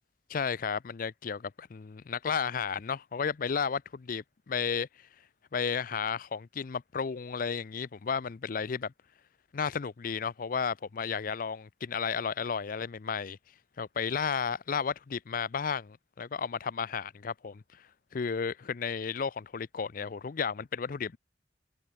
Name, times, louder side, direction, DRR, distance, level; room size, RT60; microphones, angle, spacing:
voice 1, 0.3-4.9 5.5-8.9 9.5-13.4 13.8-17.6 18.1-21.2, left 6 dB, 50° left, 0.5 m, -33 dB
head